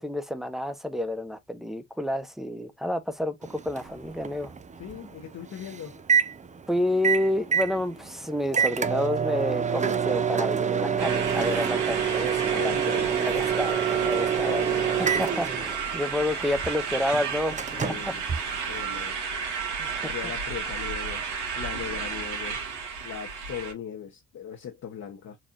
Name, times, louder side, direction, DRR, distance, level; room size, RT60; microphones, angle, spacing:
voice 1, 0.0-4.5 6.7-18.1 19.8-20.1, left 1 dB, ahead, 0.9 m, -30 dB
Microwave oven, 3.4-19.1, right 7 dB, 25° right, 0.5 m, -28 dB
voice 2, 4.8-6.0 12.5-13.1 14.4-15.1 17.8-18.2 18.6-19.2 19.8-22.7 23.0-25.4, left 9 dB, 60° left, 1.0 m, -39 dB
sound 1, 11.0-23.7, right 6 dB, 85° right, 1.8 m, -32 dB
4.2 x 3.3 x 2.5 m
cardioid pair, 90°, 30 cm